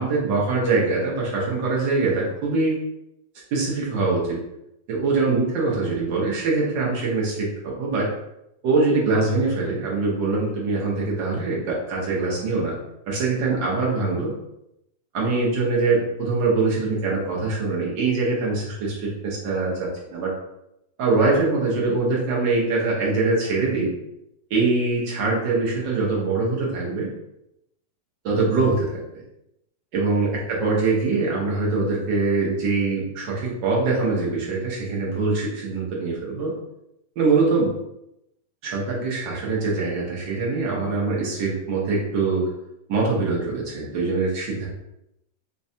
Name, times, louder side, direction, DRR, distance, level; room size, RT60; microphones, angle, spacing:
voice 1, 0.0-2.8 3.5-4.4 4.9-8.1 8.6-12.8 13.1-14.3 15.1-20.3 21.0-23.9 24.5-27.1 28.2-29.2 29.9-36.5 37.2-37.7 38.6-42.5 42.9-44.7, right 3 dB, 85° right, -3 dB, 1.7 m, -23 dB
4.6 x 2.2 x 2.7 m, 0.84 s
omnidirectional pair, 1.9 m